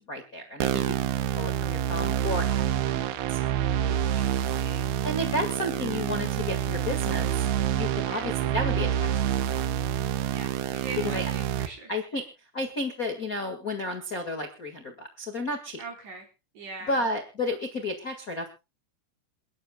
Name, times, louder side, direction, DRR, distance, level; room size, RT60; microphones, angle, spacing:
voice 1, 0.1-3.5 5.0-9.1 11.0-11.3 11.9-12.2 12.5-15.8 16.9-18.5, left 1 dB, 70° left, 4 dB, 0.8 m, -32 dB
sound 1, 0.6-11.7, right 10 dB, 75° right, 2.8 m, -27 dB
voice 2, 3.8-5.9 8.1-8.4 10.3-12.2 15.8-16.3 16.5-17.1, right 3 dB, 45° right, 2 dB, 5.5 m, -43 dB
28.5 x 11.0 x 2.3 m, 0.29 s
omnidirectional pair, 4.9 m